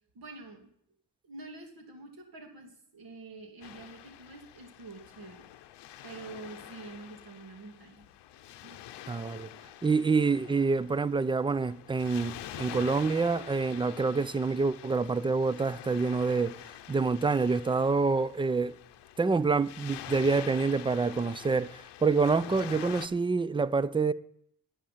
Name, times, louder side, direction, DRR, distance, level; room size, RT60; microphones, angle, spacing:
voice 1, 0.1-0.7 1.2-5.5 6.0-8.1 8.6-8.8, right 3 dB, 60° right, 2.6 m, -47 dB
Waves surf, 3.6-23.1, left 12 dB, 90° left, 0.8 m, -46 dB
voice 2, 9.1-9.5 9.8-16.5 16.9-18.8 19.2-24.1, right 4 dB, 15° right, 0.4 m, -27 dB
10.5 x 8.7 x 5.7 m
cardioid pair, 75°, 40 cm